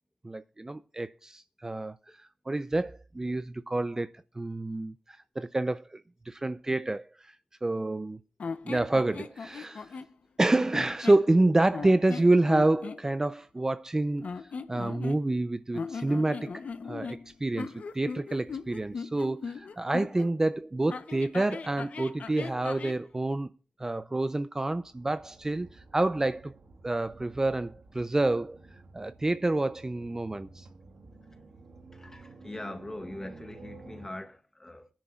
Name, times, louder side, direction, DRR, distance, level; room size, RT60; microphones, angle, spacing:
voice 1, 0.2-2.0 2.5-4.1 4.4-6.0 6.3-7.4 7.6-8.2 8.6-10.0 10.4-14.3 14.7-23.5 23.8-26.5 26.8-28.6 28.9-30.7, right 2 dB, 25° right, 0.5 m, -28 dB
sound 1, 8.4-10.1 10.7-11.3 11.7-13.0 14.2-15.4 15.7-20.3 20.9-23.0, left 5 dB, 80° left, 0.8 m, -39 dB
sound 2, 24.8-34.1, right 3 dB, 90° right, 2.4 m, -52 dB
voice 2, 31.9-34.9, left 1 dB, 20° left, 2.0 m, -42 dB
20.5 x 10.5 x 2.4 m
wide cardioid pair, 100°, 2 cm